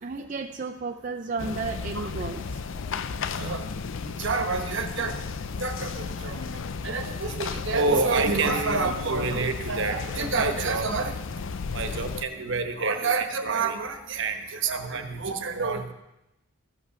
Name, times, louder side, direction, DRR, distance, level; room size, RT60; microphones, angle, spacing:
voice 1, 0.0-2.9, right 4 dB, 35° right, 3 dB, 0.4 m, -33 dB
sound 1, 1.4-12.2, left 5 dB, 55° left, 0.4 m, -34 dB
voice 2, 4.0-5.1 5.6-6.4 6.8-11.2 11.7-15.9, right 4 dB, 55° right, 7 dB, 1.1 m, -27 dB
14.5 x 5.6 x 6.9 m, 0.93 s
head